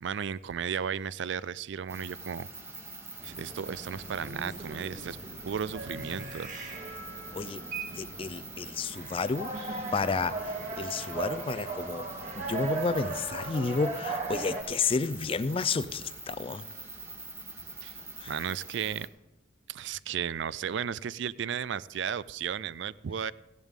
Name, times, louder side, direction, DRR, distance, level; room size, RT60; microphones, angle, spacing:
voice 1, 0.0-2.5 3.2-5.2 5.5-6.5 17.8-18.0 18.2-19.1 19.7-23.3, right 7 dB, 65° right, 0.4 m, -34 dB
sound 1, 1.9-19.1, right 2 dB, 15° right, 1.3 m, -45 dB
sound 2, 3.2-14.6, right 3 dB, 40° right, 2.4 m, -38 dB
voice 2, 7.9-9.5 9.9-12.1 12.4-16.7 18.2-18.3, left 4 dB, 30° left, 0.4 m, -31 dB
16.5 x 10.5 x 3.7 m
head